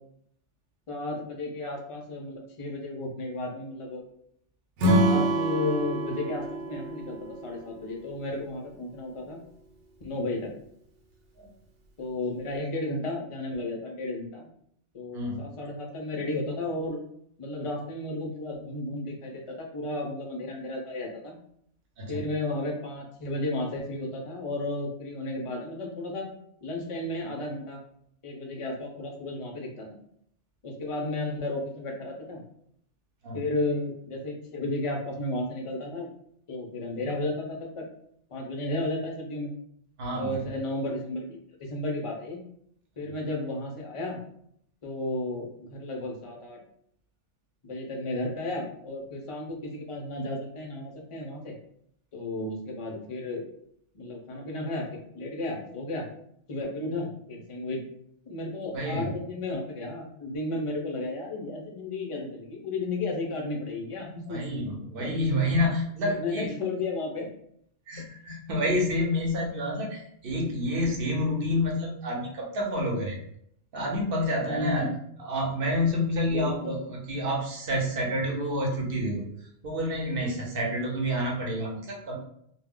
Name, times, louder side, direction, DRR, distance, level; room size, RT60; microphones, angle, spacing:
voice 1, 0.9-4.0 4.9-9.4 10.0-10.5 12.0-14.5 14.9-17.0 17.4-21.4 22.1-26.3 26.6-27.8 28.2-30.0 30.6-32.4 33.3-36.1 36.5-37.8 38.3-39.5 40.1-41.4 41.7-42.4 43.0-44.2 44.8-46.6 47.6-51.5 52.1-53.4 53.9-56.1 56.5-57.9 58.3-64.5 65.0-65.6 66.2-67.3 74.5-74.9 76.3-76.9 80.7-80.9, left 2 dB, 55° left, 0 dB, 0.3 m, -33 dB
Acoustic guitar / Strum, 4.8-8.1, right 1 dB, 75° right, 1.0 m, -26 dB
voice 2, 15.1-15.5 22.0-22.3 33.2-33.4 40.0-40.5 58.7-59.1 64.3-66.5 67.9-73.2 73.7-74.9 75.2-79.3 79.6-82.2, left 1 dB, 55° right, -1 dB, 0.9 m, -29 dB
2.3 x 2.1 x 3.5 m, 0.69 s
omnidirectional pair, 1.3 m